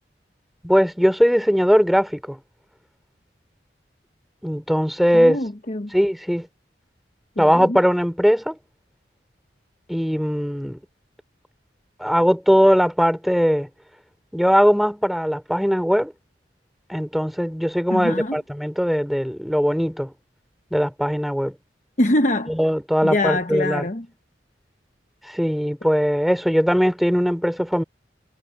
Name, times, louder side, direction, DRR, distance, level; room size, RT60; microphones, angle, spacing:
voice 1, 0.6-2.4 4.4-5.4 5.9-6.5 7.4-8.6 9.9-10.8 12.0-13.7 14.3-16.1 16.9-20.1 20.7-21.5 22.5-23.9 25.3-27.8, equal, ahead, 3.8 m, -20 dB
voice 2, 5.1-5.9 7.4-7.8 17.9-18.4 22.0-22.6 23.0-24.1, left 1 dB, 40° left, 1.0 m, -24 dB
head